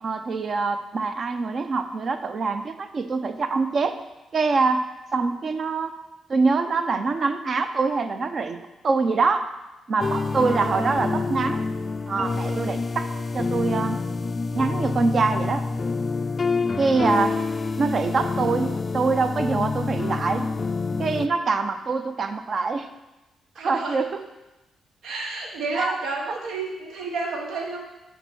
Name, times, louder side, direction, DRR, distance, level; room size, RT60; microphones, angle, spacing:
voice 1, 0.0-4.0 4.3-5.9 6.3-9.5 9.9-11.6 12.1-13.1 13.3-14.0 14.5-15.6 16.8-17.4 17.8-20.5 21.0-22.9 23.6-24.2 25.7-26.0, right 4 dB, 50° right, 9 dB, 0.6 m, -24 dB
sound 1, 10.0-21.3, left 4 dB, 35° left, 0.3 m, -27 dB
voice 2, 10.4-11.1 12.4-12.7 16.4-16.7 23.6-24.0 25.0-27.8, right 3 dB, 85° right, 0 dB, 1.1 m, -31 dB
7.9 x 3.6 x 6.2 m, 1.0 s
cardioid pair, 85°, 0 cm